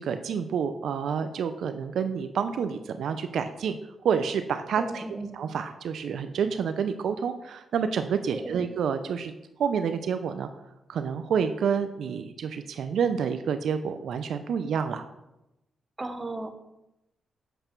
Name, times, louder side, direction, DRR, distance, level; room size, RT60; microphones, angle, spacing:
voice 1, 0.0-3.8 4.0-5.0 5.3-9.3 9.6-10.5 10.9-15.0, right 7 dB, 75° right, 9 dB, 0.5 m, -28 dB
voice 2, 4.8-5.3 8.3-8.6 16.0-16.5, right 2 dB, 20° right, 7 dB, 1.0 m, -35 dB
7.9 x 6.6 x 4.5 m, 0.92 s
cardioid pair, 90°, 0 cm